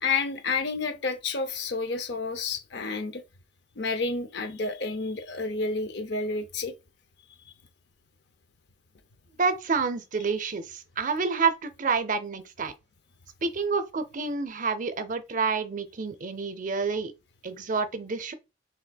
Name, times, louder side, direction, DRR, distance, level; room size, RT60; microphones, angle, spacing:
voice 1, 0.0-3.2 3.8-6.7, left 4 dB, 65° left, 0.6 m, -30 dB
voice 2, 9.4-12.7 13.4-17.1 17.4-18.3, right 4 dB, 45° right, 0.5 m, -28 dB
6.0 x 3.5 x 2.3 m
head